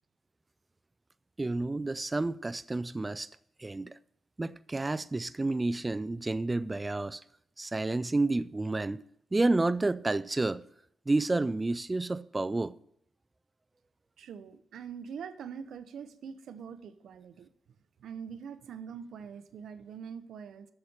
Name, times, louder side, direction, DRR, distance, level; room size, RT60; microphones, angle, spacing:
voice 1, 1.4-3.3 3.6-3.9 4.4-7.2 7.6-9.0 9.3-10.6 11.1-12.8, right 2 dB, 20° right, 0.3 m, -30 dB
voice 2, 14.2-17.5 18.0-20.7, right 7 dB, 75° right, 0.6 m, -43 dB
7.9 x 6.6 x 7.1 m
cardioid pair, 115°, 0 cm